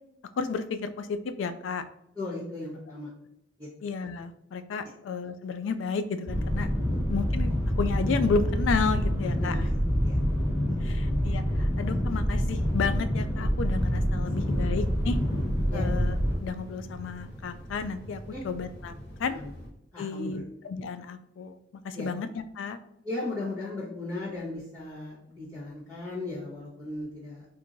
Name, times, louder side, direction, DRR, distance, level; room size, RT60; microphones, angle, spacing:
voice 1, 0.4-1.8 3.8-6.7 7.1-7.5 7.8-9.5 10.8-15.2 15.7-18.9 19.2-19.4 20.0-21.6 21.8-22.3 22.6-22.8, left 5 dB, 80° left, 11 dB, 0.3 m, -32 dB
voice 2, 2.1-3.1 3.6-3.7 6.9-7.0 9.4-10.2 10.7-10.8 14.2-14.7 15.7-15.8 18.3-18.4 19.3-19.5 19.9-20.4 21.9-22.1 23.0-27.4, left 2 dB, 10° left, -13 dB, 1.0 m, -37 dB
sound 1, 6.3-16.4, equal, 15° right, 1.4 m, -27 dB
sound 2, 14.4-19.7, equal, 60° left, 0.9 m, -44 dB
4.4 x 2.5 x 2.6 m, 0.80 s
head